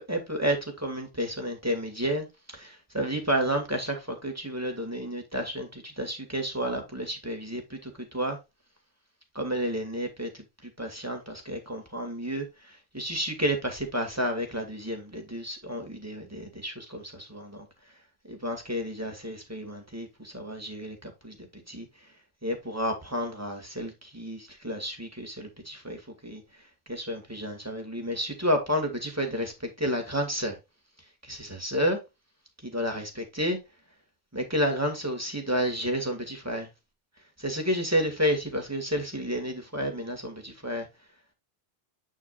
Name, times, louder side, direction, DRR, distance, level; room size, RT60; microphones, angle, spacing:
voice 1, 0.0-8.4 9.3-10.4 10.8-17.7 18.3-21.4 21.7-21.9 22.4-26.4 26.9-30.6 31.2-32.0 32.6-33.6 34.3-36.7 37.4-40.9, equal, 15° right, 2.1 m, -31 dB
8.9 x 6.1 x 2.5 m
omnidirectional pair, 1.0 m